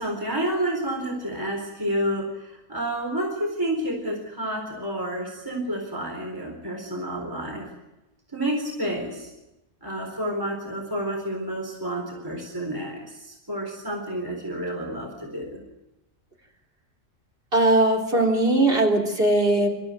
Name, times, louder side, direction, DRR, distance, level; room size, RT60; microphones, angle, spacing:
voice 1, 0.0-7.7 8.3-9.3 9.8-15.6, right 1 dB, 15° right, 1 dB, 4.2 m, -30 dB
voice 2, 17.5-19.7, right 1 dB, 45° right, 1 dB, 3.7 m, -20 dB
26.5 x 14.0 x 9.4 m, 0.97 s
omnidirectional pair, 1.4 m